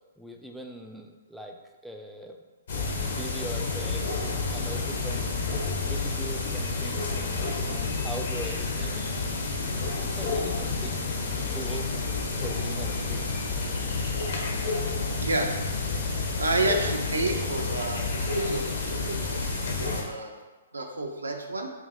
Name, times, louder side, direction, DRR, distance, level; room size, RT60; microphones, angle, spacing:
voice 1, 0.2-1.6 1.8-2.4 3.0-5.3 5.8-9.4 9.9-11.0 11.5-11.9 12.4-13.3, right 1 dB, ahead, 1 dB, 0.3 m, -41 dB
sound 1, 2.7-20.0, left 3 dB, 65° left, 0.8 m, -30 dB
voice 2, 15.2-15.5 16.4-20.3 20.7-21.7, right 2 dB, 90° right, 2 dB, 0.5 m, -30 dB
4.9 x 2.6 x 2.6 m, 1.3 s
hypercardioid pair, 125°, 0 cm